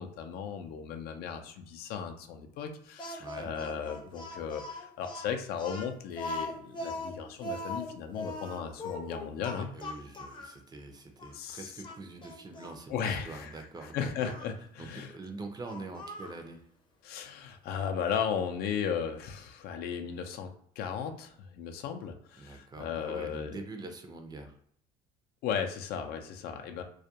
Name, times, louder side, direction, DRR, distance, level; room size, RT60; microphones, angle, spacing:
voice 1, 0.0-9.7 11.3-11.7 12.9-15.1 17.0-20.5 20.8-23.6 25.4-26.8, left 7 dB, 70° left, 5 dB, 0.5 m, -36 dB
Speech, 3.0-10.6 11.2-11.3 11.8-12.8 14.2-14.5 15.6-16.4, left 2 dB, 25° left, 0.6 m, -40 dB
voice 2, 3.2-3.5 9.6-14.3 14.8-16.7 22.4-24.5, right 3 dB, 25° right, 5 dB, 0.5 m, -44 dB
2.3 x 2.1 x 2.8 m, 0.64 s
cardioid pair, 105°, 17 cm